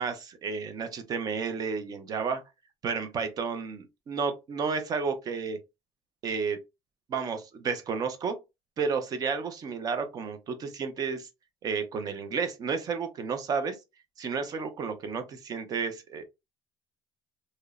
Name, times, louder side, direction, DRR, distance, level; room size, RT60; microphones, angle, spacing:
voice 1, 0.0-2.4 2.8-5.6 6.2-6.6 7.1-8.4 8.8-11.3 11.6-13.8 14.2-16.2, right 5 dB, 35° right, 0.5 m, -31 dB
2.8 x 2.0 x 2.3 m
cardioid pair, 150°, 11 cm